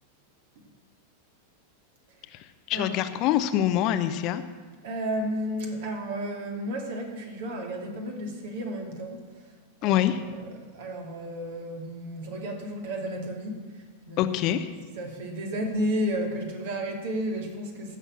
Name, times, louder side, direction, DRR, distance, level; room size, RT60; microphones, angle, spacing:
voice 1, 2.3-4.4 9.8-10.2 14.2-14.7, left 11 dB, 40° left, 11 dB, 0.7 m, -25 dB
voice 2, 4.8-9.2 9.8-10.0 10.7-13.6 14.1-14.6 15.0-18.0, equal, 55° right, 2 dB, 2.6 m, -32 dB
17.0 x 6.8 x 7.5 m, 1.4 s
figure-of-eight pair, 90°, 0 cm